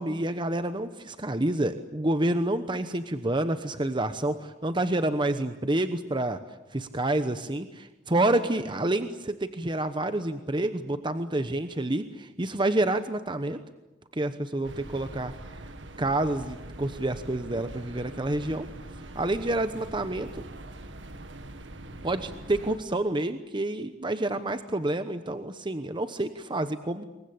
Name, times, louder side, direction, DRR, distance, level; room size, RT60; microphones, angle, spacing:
voice 1, 0.0-6.4 6.7-13.6 14.1-15.3 16.0-18.7 19.1-20.4 22.0-27.0, right 1 dB, 25° right, 10 dB, 1.0 m, -28 dB
sound 1, 14.6-22.8, right 1 dB, 85° right, 1.8 m, -43 dB
27.5 x 22.5 x 8.7 m, 1.1 s
head